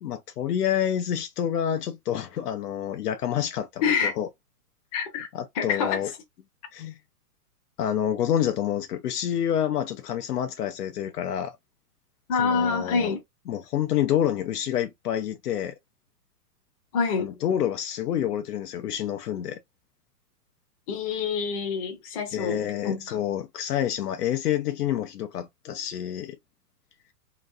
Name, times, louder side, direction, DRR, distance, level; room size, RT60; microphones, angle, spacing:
voice 1, 0.0-4.3 5.3-6.1 6.7-7.0 7.8-11.6 12.4-13.1 13.5-15.7 17.2-19.6 22.3-26.4, left 10 dB, 75° left, 0.7 m, -28 dB
voice 2, 3.8-4.1 4.9-5.3 5.6-6.0 12.3-13.2 16.9-17.3 20.9-23.2, left 5 dB, 25° left, 0.6 m, -26 dB
2.9 x 2.6 x 2.4 m
hypercardioid pair, 155°, 47 cm